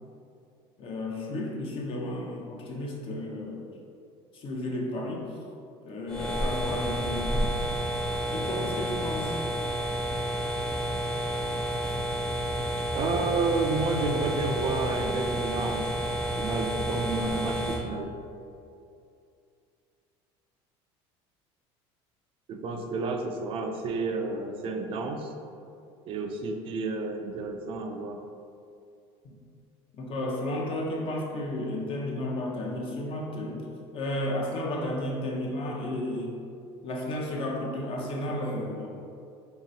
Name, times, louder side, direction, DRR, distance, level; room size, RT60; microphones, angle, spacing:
voice 1, 0.8-3.7 4.3-5.3 5.8-7.5 8.3-9.4 30.0-33.7 33.9-36.4 36.8-38.9, left 1 dB, 45° left, -1 dB, 0.7 m, -33 dB
sound 1, 6.1-17.8, equal, 5° left, 0.5 m, -30 dB
voice 2, 12.9-15.9 16.4-18.1 22.5-25.3 26.1-28.2, right 3 dB, 45° right, 4 dB, 0.4 m, -30 dB
3.2 x 2.9 x 3.9 m, 2.5 s
cardioid pair, 120°, 12 cm